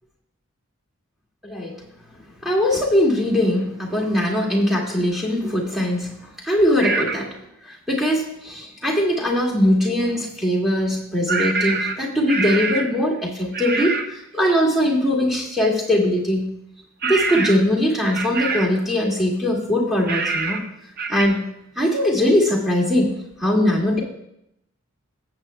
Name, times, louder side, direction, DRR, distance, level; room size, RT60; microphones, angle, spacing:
voice 1, 1.4-1.8 2.4-6.1 6.4-7.3 7.7-16.5 17.0-20.6 21.1-21.4 21.8-24.0, left 1 dB, ahead, -3 dB, 2.0 m, -21 dB
sound 1, 6.8-7.2 11.3-13.0 13.5-14.1 17.0-17.7 18.1-18.8 20.1-20.7 21.0-21.3, right 4 dB, 45° right, 0.6 m, -25 dB
16.5 x 7.8 x 2.2 m, 0.79 s
head